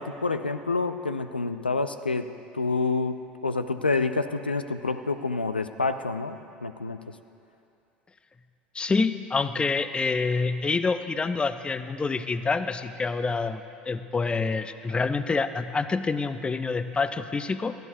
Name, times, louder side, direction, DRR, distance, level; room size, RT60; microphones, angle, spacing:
voice 1, 0.0-2.3 2.5-7.0, left 3 dB, 90° left, 10 dB, 0.4 m, -28 dB
voice 2, 8.7-13.6 13.9-17.7, left 4 dB, 20° left, 12 dB, 0.5 m, -27 dB
20.5 x 13.5 x 2.7 m, 2.7 s
figure-of-eight pair, 65°, 5 cm